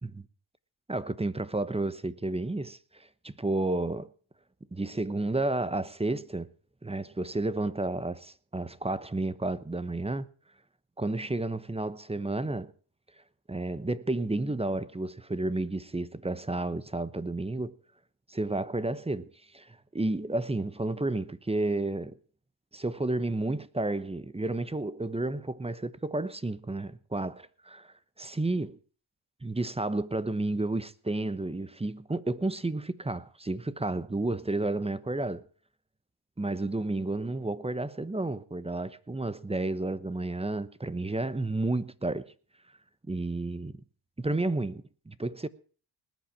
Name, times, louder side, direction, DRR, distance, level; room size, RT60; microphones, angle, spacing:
voice 1, 0.9-4.1 4.7-6.5 6.8-10.3 11.0-12.7 13.5-17.7 18.3-22.2 22.7-28.8 29.4-35.4 36.4-42.3 43.1-43.8 44.2-45.5, right 2 dB, 10° right, 1.0 m, -31 dB
19.5 x 8.8 x 6.0 m
cardioid pair, 80°, 49 cm